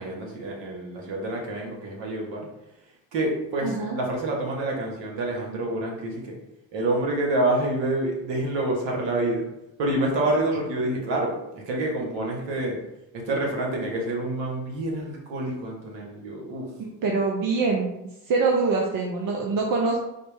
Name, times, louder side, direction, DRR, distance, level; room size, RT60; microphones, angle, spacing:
voice 1, 0.0-2.5 3.1-6.4 6.7-9.5 9.8-12.8 13.1-16.7, right 1 dB, 65° right, -1 dB, 1.2 m, -27 dB
voice 2, 3.6-4.0 16.8-17.9 18.3-20.0, right 4 dB, 45° right, 0 dB, 0.7 m, -24 dB
4.1 x 2.1 x 3.3 m, 0.91 s
hypercardioid pair, 50°, 47 cm